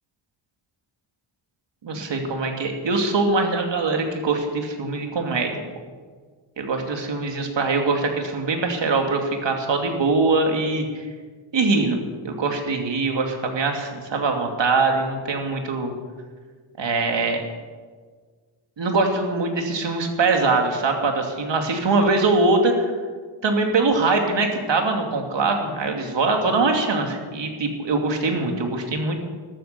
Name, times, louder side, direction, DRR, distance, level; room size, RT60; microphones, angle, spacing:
voice 1, 1.8-5.5 6.6-11.1 11.5-12.0 12.2-15.9 16.8-17.4 18.8-22.9 23.4-29.2, right 3 dB, 60° right, 3 dB, 2.7 m, -22 dB
13.5 x 13.5 x 6.9 m, 1.5 s
cardioid pair, 80°, 48 cm